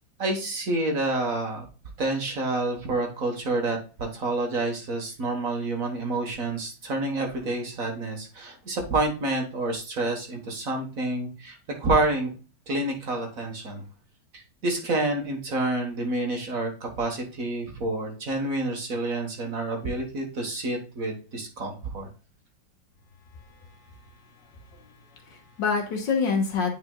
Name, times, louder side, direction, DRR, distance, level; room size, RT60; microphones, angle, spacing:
voice 1, 0.2-1.6 2.0-12.3 12.7-13.8 14.3-22.1, right 2 dB, 50° right, 3 dB, 1.6 m, -28 dB
voice 2, 24.3-26.7, left 5 dB, 70° left, 3 dB, 2.1 m, -28 dB
9.5 x 4.9 x 2.2 m, 0.34 s
omnidirectional pair, 2.1 m